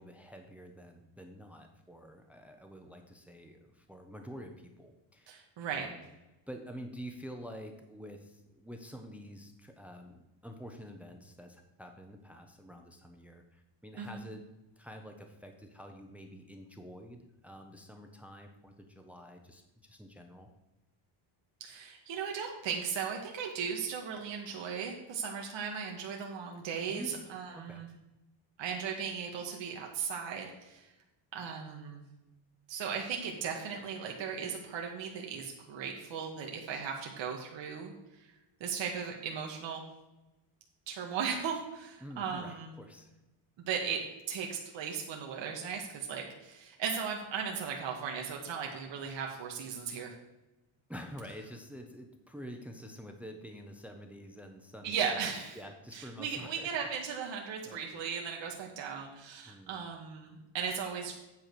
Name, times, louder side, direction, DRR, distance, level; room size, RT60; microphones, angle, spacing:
voice 1, 0.0-5.5 5.7-6.0 6.5-14.4 14.8-20.5 26.9-27.2 27.5-27.8 42.0-43.1 50.9-55.2 55.5-56.7 57.6-57.9 59.5-59.8, equal, 5° right, 5 dB, 0.8 m, -48 dB
voice 2, 5.3-5.9 14.0-14.2 21.6-27.9 28.6-30.9 31.3-32.0 32.7-39.8 40.9-42.7 43.6-50.1 54.8-55.6 55.9-61.1, right 6 dB, 65° right, 0 dB, 1.5 m, -37 dB
9.0 x 4.8 x 6.8 m, 1.0 s
cardioid pair, 160°, 48 cm